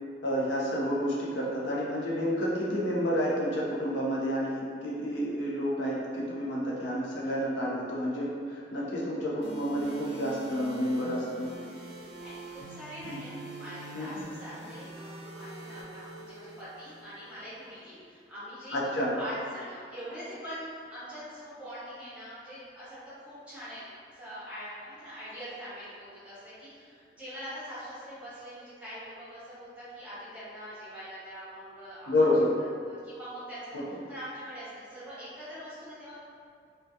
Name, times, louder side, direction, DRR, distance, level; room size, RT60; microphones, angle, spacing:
voice 1, 0.2-11.5 13.0-13.2 13.9-14.1 18.7-19.1 32.1-32.5, equal, 85° left, -6 dB, 0.5 m, -29 dB
sound 1, 9.4-17.4, right 2 dB, 75° right, 0.4 m, -44 dB
voice 2, 11.7-33.8 34.1-36.2, equal, 5° right, -13 dB, 0.8 m, -43 dB
2.2 x 2.2 x 2.6 m, 2.2 s
head